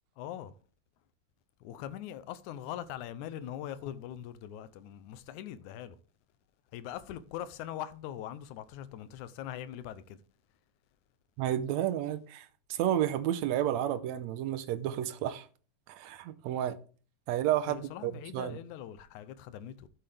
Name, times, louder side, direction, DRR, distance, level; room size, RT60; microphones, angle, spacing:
voice 1, 0.2-0.5 1.6-6.0 6.7-10.2 17.7-19.9, left 11 dB, 85° left, 2.2 m, -42 dB
voice 2, 11.4-15.5 15.9-16.8 17.3-18.6, right 11 dB, 75° right, 1.9 m, -31 dB
11.5 x 7.9 x 3.4 m
omnidirectional pair, 3.4 m